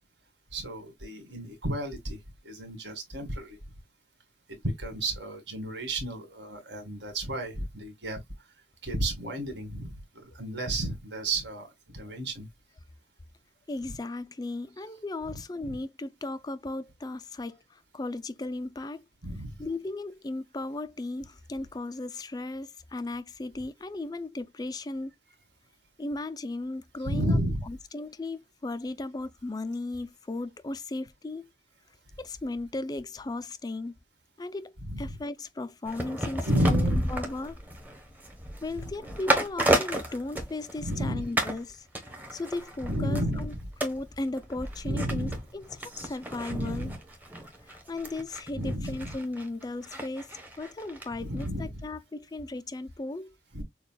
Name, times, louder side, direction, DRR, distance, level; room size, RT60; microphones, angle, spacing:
voice 1, 0.5-3.6 4.5-8.5 8.8-12.5 15.3-15.8 19.2-19.7 27.0-27.7 34.8-35.1 36.4-37.0 38.7-38.9 40.8-41.3 42.8-43.5 44.8-45.4 46.5-47.0 48.5-49.1 51.2-51.8 53.5-53.6, right 1 dB, 70° right, 1.9 m, -32 dB
voice 2, 13.7-19.1 19.6-25.1 26.0-27.4 27.7-31.5 32.2-33.9 34.4-34.7 35.0-37.6 38.6-43.5 43.8-46.9 47.7-53.3, left 2 dB, 20° left, 0.3 m, -36 dB
sound 1, 35.9-41.0 41.4-41.6 42.0-51.1 51.4-51.5, right 1 dB, 10° right, 0.9 m, -33 dB
6.6 x 2.3 x 2.2 m
head